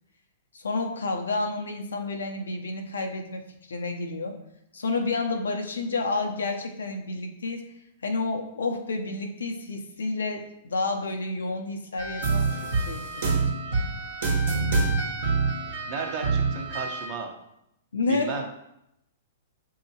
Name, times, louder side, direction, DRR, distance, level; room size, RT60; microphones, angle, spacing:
voice 1, 0.5-4.3 4.7-7.6 8.0-12.6 12.9-13.5 17.9-18.4, left 3 dB, 85° left, 4 dB, 0.6 m, -30 dB
sound 1, 12.0-17.1, right 4 dB, 70° right, 1.2 m, -26 dB
voice 2, 15.9-17.3 18.1-18.4, right 5 dB, 45° right, 2 dB, 0.9 m, -33 dB
6.8 x 2.8 x 2.8 m, 0.81 s
hypercardioid pair, 120°, 0 cm